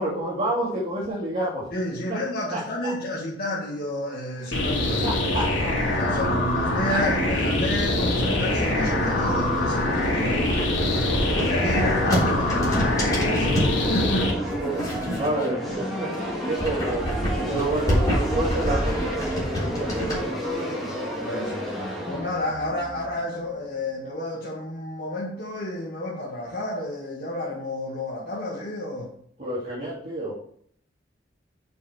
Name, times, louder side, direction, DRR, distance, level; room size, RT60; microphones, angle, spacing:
voice 1, 0.0-1.7 2.1-2.2 2.5-2.9 4.4-4.6 5.0-6.3 6.7-6.8 11.7-12.3 14.4-14.9 15.1-16.1 16.4-17.1 17.5-20.7 29.4-30.4, right 1 dB, 35° right, -10 dB, 2.8 m, -29 dB
voice 2, 1.7-5.2 5.9-10.5 11.4-14.3 17.5-17.9 20.6-20.7 21.2-21.7 22.0-29.1, left 1 dB, 50° left, -5 dB, 1.6 m, -31 dB
sound 1, 4.5-14.3, left 1 dB, 75° left, 2.6 m, -24 dB
sound 2, 6.2-23.9, equal, ahead, 2.1 m, -32 dB
sound 3, 9.9-13.7 14.4-15.8 16.1-20.2, equal, 20° left, 3.6 m, -27 dB
6.8 x 5.3 x 6.4 m, 0.64 s
head